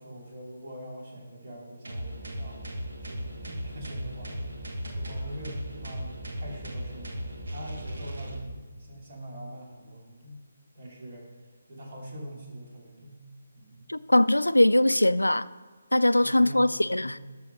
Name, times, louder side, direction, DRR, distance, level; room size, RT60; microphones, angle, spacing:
voice 1, 0.0-10.4 10.7-11.3 11.7-13.2 13.5-13.9 16.1-17.2, right 1 dB, 45° right, 2.6 m, -43 dB
sound 1, 1.8-8.4, equal, 60° right, 1.4 m, -37 dB
voice 2, 13.9-15.5 15.9-17.2, left 1 dB, 85° left, 0.3 m, -21 dB
12.5 x 6.2 x 4.2 m
figure-of-eight pair, 145°, 0 cm